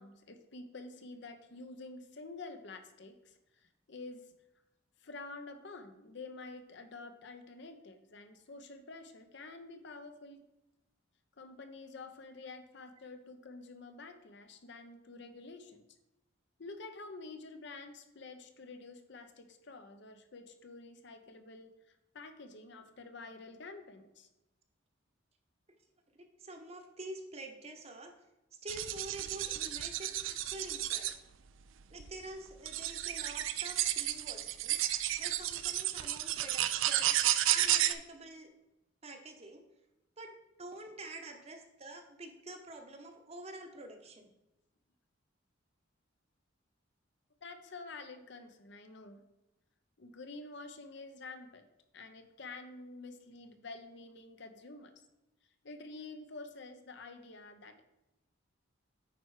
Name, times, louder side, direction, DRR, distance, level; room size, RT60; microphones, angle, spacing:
voice 1, 0.0-4.2 5.0-10.4 11.4-15.9 16.6-24.3 47.4-49.2 50.0-51.7 51.9-54.9 55.6-57.8, left 3 dB, 60° left, 8 dB, 0.7 m, -49 dB
voice 2, 26.4-28.1 28.6-31.1 31.9-34.8 35.2-37.2 37.5-38.5 39.0-39.6 40.2-44.3, right 2 dB, 30° right, 5 dB, 0.9 m, -47 dB
sound 1, 28.7-31.1 32.0-32.1 32.7-37.9, right 13 dB, 70° right, 0.4 m, -32 dB
9.0 x 4.5 x 4.8 m, 0.93 s
head